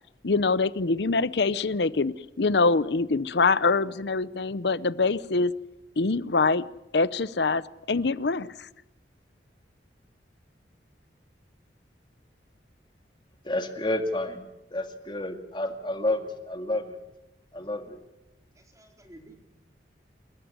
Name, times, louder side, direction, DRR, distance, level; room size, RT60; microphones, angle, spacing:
voice 1, 0.2-5.5 6.0-6.6 6.9-7.6 7.9-8.7, left 3 dB, 70° left, 18 dB, 0.7 m, -24 dB
voice 2, 13.4-14.4 14.7-17.0 17.5-18.0, left 1 dB, 25° left, 6 dB, 2.2 m, -30 dB
voice 3, 17.4-17.8 18.5-19.4, right 1 dB, 20° right, 2 dB, 4.3 m, -53 dB
29.0 x 14.0 x 9.6 m, 0.94 s
head